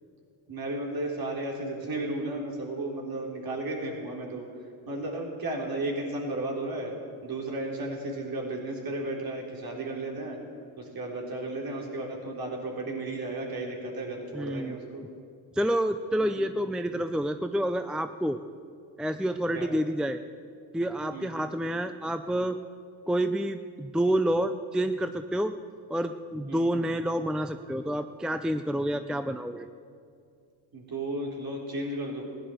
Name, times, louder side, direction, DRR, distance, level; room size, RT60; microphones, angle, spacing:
voice 1, 0.5-4.4 4.9-6.9 7.2-10.4 10.8-15.1 16.2-16.5 19.5-19.7 21.1-21.4 26.5-26.7 30.7-32.2, right 2 dB, 50° right, 0 dB, 3.9 m, -34 dB
voice 2, 14.3-14.8 15.6-18.4 19.0-20.2 20.7-22.6 23.1-25.5 25.9-29.7, right 1 dB, ahead, 10 dB, 0.5 m, -28 dB
15.5 x 10.5 x 7.8 m, 2.3 s
supercardioid pair, 70°, 47 cm